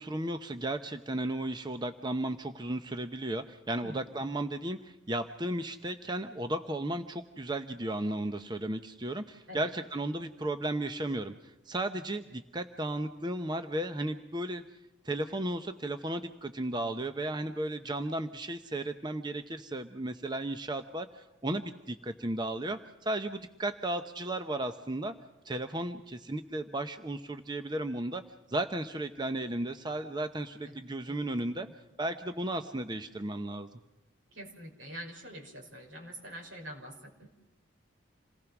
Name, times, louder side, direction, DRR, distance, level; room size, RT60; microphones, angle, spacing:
voice 1, 0.0-14.6 15.0-25.1 25.4-28.2 28.5-31.7 32.0-33.7, right 1 dB, 20° right, 8 dB, 0.8 m, -34 dB
voice 2, 30.6-31.7 34.3-37.3, equal, 75° right, 3 dB, 5.7 m, -46 dB
28.0 x 19.0 x 6.0 m, 0.96 s
head